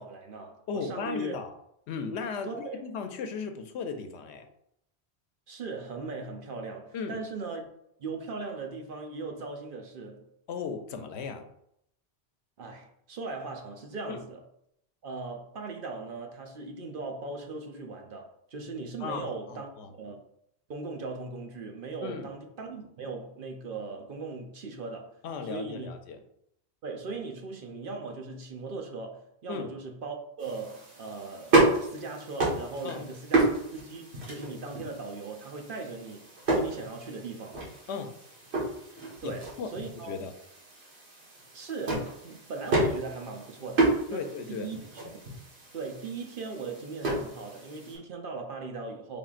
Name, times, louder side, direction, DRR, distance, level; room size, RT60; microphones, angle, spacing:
voice 1, 0.0-1.3 2.4-2.8 5.5-7.7 8.0-10.2 12.6-14.4 15.0-19.7 20.0-20.2 20.7-25.9 26.8-37.6 39.2-40.2 41.5-45.0 45.7-49.2, right 3 dB, 60° right, 0.8 m, -39 dB
voice 2, 0.7-1.5 1.9-4.5 6.9-7.2 10.5-11.5 14.1-14.2 19.0-19.9 22.0-22.3 25.2-26.2 29.5-29.7 32.8-33.0 37.9-38.1 39.2-39.7 40.0-40.3 44.1-44.7, left 5 dB, 90° left, 0.9 m, -36 dB
sound 1, 30.4-48.0, right 2 dB, 75° right, 1.6 m, -31 dB
5.4 x 3.4 x 2.4 m
omnidirectional pair, 1.1 m